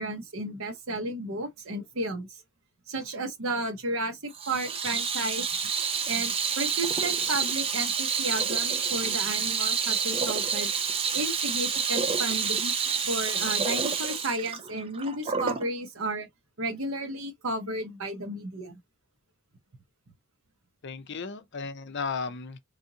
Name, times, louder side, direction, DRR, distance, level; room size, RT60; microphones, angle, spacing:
voice 1, 0.0-2.4 2.9-5.6 6.1-10.7 11.1-12.7 13.0-16.3 16.6-18.8, right 2 dB, 65° right, 1.0 m, -33 dB
Water tap faucet / Sink (filling or washing), 4.3-15.7, right 6 dB, 25° right, 0.5 m, -28 dB
voice 2, 20.8-22.6, left 5 dB, 55° left, 0.6 m, -35 dB
3.9 x 3.4 x 2.8 m
head